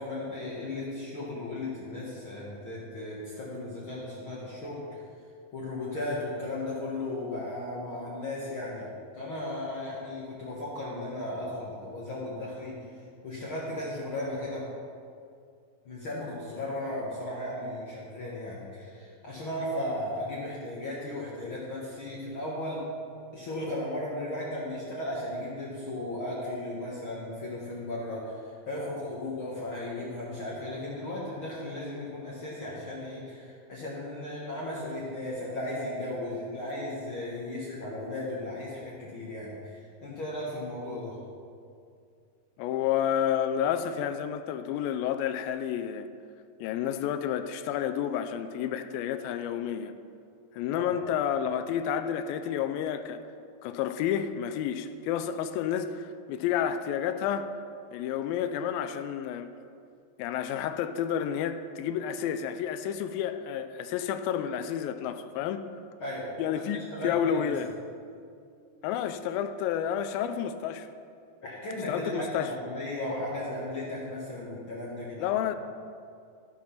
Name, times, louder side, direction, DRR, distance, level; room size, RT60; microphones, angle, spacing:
voice 1, 0.0-5.0 5.5-12.8 13.2-14.6 15.8-22.8 23.3-41.2 50.7-50.9 66.0-67.5 71.4-75.3, left 1 dB, 55° left, -6 dB, 1.5 m, -36 dB
voice 2, 42.6-46.1 46.6-49.9 50.5-53.2 53.6-57.5 57.9-59.5 60.2-65.6 66.4-67.7 68.8-70.9 71.9-72.5 75.2-75.6, left 9 dB, 80° left, 10 dB, 2.3 m, -30 dB
13.5 x 6.0 x 5.7 m, 2.4 s
omnidirectional pair, 4.3 m